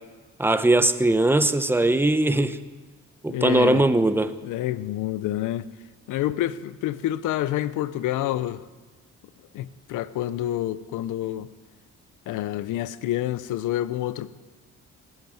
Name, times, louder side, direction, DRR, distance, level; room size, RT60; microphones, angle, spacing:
voice 1, 0.4-2.6 3.2-4.3, right 2 dB, 5° right, 0.9 m, -20 dB
voice 2, 3.3-3.8 4.4-5.6 6.1-8.6 9.5-11.5 12.3-14.3, left 13 dB, 85° left, 0.7 m, -28 dB
19.0 x 9.0 x 7.6 m
cardioid pair, 90°, 30 cm